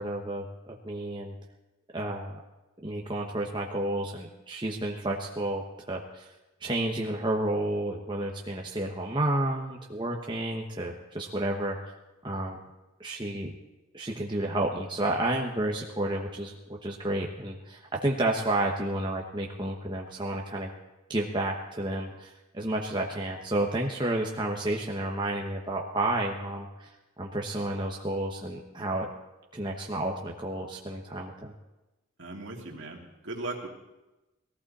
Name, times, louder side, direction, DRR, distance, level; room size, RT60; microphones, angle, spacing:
voice 1, 0.0-1.3 1.9-2.4 2.8-6.3 6.6-11.8 12.2-12.6 13.0-13.5 13.9-20.7 21.1-26.9 27.2-29.1 29.5-31.5, right 1 dB, 20° right, 0 dB, 1.1 m, -31 dB
voice 2, 32.2-33.7, right 2 dB, 65° right, 0 dB, 2.5 m, -38 dB
19.0 x 14.0 x 4.2 m, 1.0 s
head